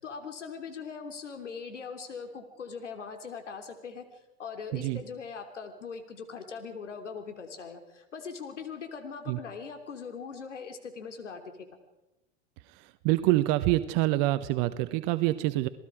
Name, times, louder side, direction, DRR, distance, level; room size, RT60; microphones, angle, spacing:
voice 1, 0.0-4.0 4.4-11.7, left 5 dB, 85° left, 5 dB, 3.3 m, -41 dB
voice 2, 12.6-15.7, right 17 dB, 50° right, 12 dB, 1.1 m, -26 dB
28.0 x 18.5 x 5.0 m, 0.97 s
hypercardioid pair, 95°, 35 cm